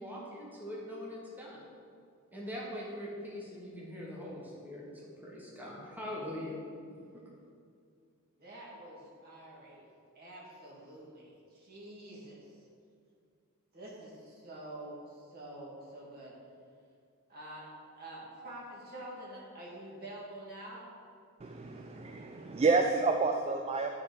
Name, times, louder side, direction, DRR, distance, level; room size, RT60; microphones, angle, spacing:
voice 1, 0.0-1.6 2.3-6.6, left 1 dB, 10° right, -5 dB, 1.3 m, -42 dB
voice 2, 8.4-9.9 10.2-12.5 13.7-16.3 17.3-17.7 18.0-20.8, right 1 dB, 45° right, -5 dB, 2.1 m, -47 dB
voice 3, 21.4-24.0, right 4 dB, 30° right, 4 dB, 0.4 m, -29 dB
9.6 x 4.3 x 4.9 m, 2.3 s
head